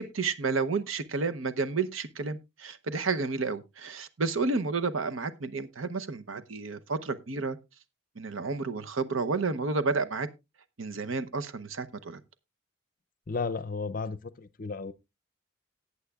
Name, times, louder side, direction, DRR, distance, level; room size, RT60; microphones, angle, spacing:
voice 1, 0.0-7.6 8.2-10.3 10.8-12.2, right 4 dB, 80° right, 0.8 m, -31 dB
voice 2, 13.3-14.9, left 4 dB, 45° left, 0.6 m, -33 dB
18.0 x 8.3 x 2.3 m
head